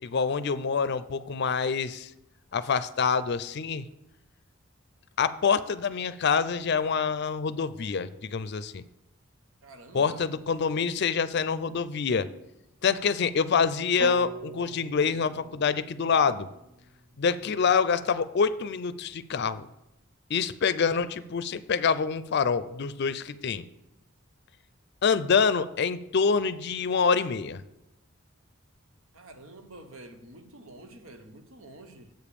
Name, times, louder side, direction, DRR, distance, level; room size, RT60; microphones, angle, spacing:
voice 1, 0.0-2.1 2.5-3.9 5.2-8.8 9.9-12.3 12.8-16.5 17.2-19.7 20.3-23.6 25.0-27.6, left 5 dB, 55° left, 0.4 m, -26 dB
voice 2, 9.6-10.2 29.1-32.1, right 2 dB, 90° right, 0.9 m, -48 dB
sound 1, 14.0-18.1, right 2 dB, 40° right, 0.6 m, -42 dB
7.8 x 5.0 x 6.9 m
head